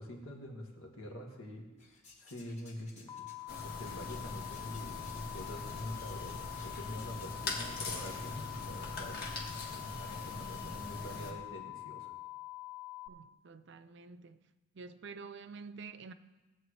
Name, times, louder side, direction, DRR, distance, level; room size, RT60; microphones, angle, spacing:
voice 1, 0.0-1.7 2.2-3.3 3.6-9.3 9.7-12.1, left 1 dB, 90° left, 1.8 m, -46 dB
sound 1, 1.8-7.3, left 3 dB, 35° left, 1.2 m, -60 dB
sound 2, 3.1-13.1, left 19 dB, 15° left, 0.5 m, -46 dB
sound 3, 3.5-11.3, left 2 dB, 50° left, 1.5 m, -42 dB
voice 2, 13.1-14.4 14.7-16.1, right 4 dB, 60° right, 0.5 m, -48 dB
18.0 x 8.0 x 3.2 m
head